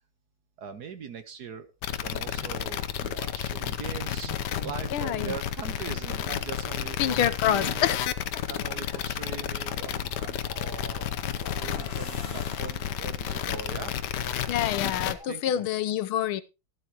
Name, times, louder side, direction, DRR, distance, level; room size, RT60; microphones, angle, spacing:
voice 1, 0.6-7.9 8.5-11.1 11.6-13.9 15.3-15.6, right 7 dB, 55° right, 10 dB, 1.4 m, -41 dB
sound 1, 1.4-1.5 2.2-2.7 4.2-5.0 7.2-7.3 7.6-14.8 15.0-15.5, equal, 25° right, 4.5 m, -50 dB
sound 2, 1.8-15.1, left 9 dB, 65° left, 1.2 m, -31 dB
voice 2, 4.9-5.3 7.0-8.0 14.5-16.4, left 11 dB, 85° left, 13 dB, 1.7 m, -27 dB
sound 3, 10.6-13.3, left 3 dB, 30° left, 1.6 m, -43 dB
14.0 x 12.5 x 3.0 m, 0.28 s
omnidirectional pair, 2.3 m